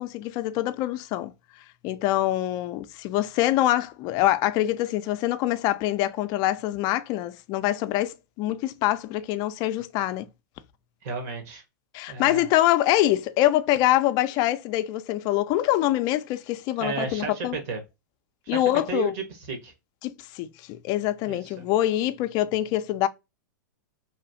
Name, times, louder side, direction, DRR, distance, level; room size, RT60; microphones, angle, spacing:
voice 1, 0.0-1.3 1.8-10.3 11.9-17.6 18.5-19.1 20.0-23.1, left 14 dB, 40° left, 0.4 m, -25 dB
voice 2, 11.0-11.6 12.1-12.5 16.8-17.8 18.5-19.7 21.2-21.6, right 5 dB, 55° right, 1.3 m, -33 dB
3.1 x 2.4 x 2.6 m
hypercardioid pair, 125°, 11 cm